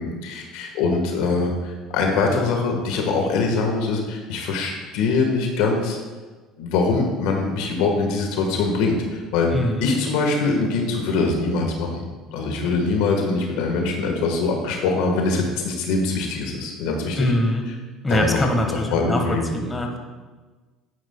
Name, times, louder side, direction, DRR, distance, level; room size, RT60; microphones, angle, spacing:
voice 1, 0.0-6.0 6.6-9.5 9.8-12.0 12.3-17.3 18.1-18.4 18.7-19.5, left 4 dB, 75° left, 2 dB, 1.5 m, -23 dB
voice 2, 9.5-9.9 17.2-17.6 18.0-20.0, left 1 dB, 15° left, 3 dB, 1.5 m, -23 dB
11.5 x 9.2 x 2.3 m, 1.3 s
supercardioid pair, 80°, 0 cm